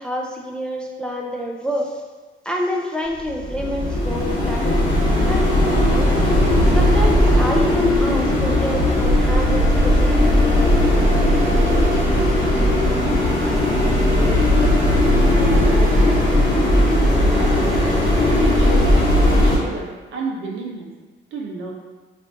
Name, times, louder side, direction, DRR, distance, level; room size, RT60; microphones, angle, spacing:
voice 1, 0.0-2.0 2.4-5.0 5.2-6.1 6.7-11.0, equal, 5° left, 0 dB, 0.3 m, -28 dB
sound 1, 3.3-19.6, left 1 dB, 45° left, 1.0 m, -17 dB
voice 2, 14.1-14.4 14.9-16.2 16.8-17.9 18.2-20.9 21.3-21.7, right 3 dB, 75° right, 0 dB, 0.6 m, -30 dB
2.5 x 2.5 x 3.3 m, 1.3 s
cardioid pair, 90°, 20 cm